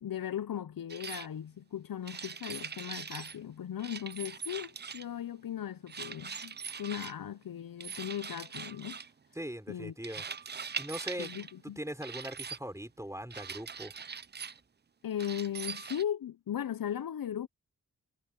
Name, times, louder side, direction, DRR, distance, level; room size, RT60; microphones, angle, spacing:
voice 1, 0.0-9.0 9.7-9.9 11.2-11.8 15.0-17.5, left 10 dB, 75° left, 0.7 m, -37 dB
sound 1, 0.9-1.3 2.0-3.4 3.8-5.2 5.9-7.1 7.8-9.1 10.0-11.5 12.0-12.6 13.3-14.6 15.2-16.0, right 6 dB, 30° right, 0.5 m, -42 dB
voice 2, 9.3-10.2 10.8-11.3 11.8-13.9, right 1 dB, 10° right, 4.8 m, -40 dB
cardioid pair, 45°, 35 cm